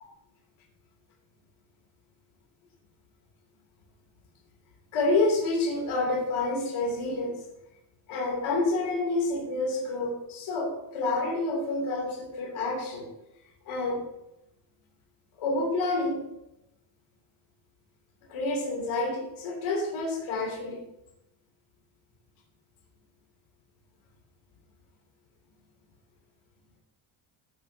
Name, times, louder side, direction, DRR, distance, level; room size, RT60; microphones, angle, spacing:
voice 1, 4.9-7.4 8.1-13.1 13.6-14.0 15.4-16.2 18.3-20.8, left 2 dB, 90° left, -1 dB, 3.3 m, -28 dB
15.0 x 7.6 x 2.9 m, 0.87 s
cardioid pair, 145°, 48 cm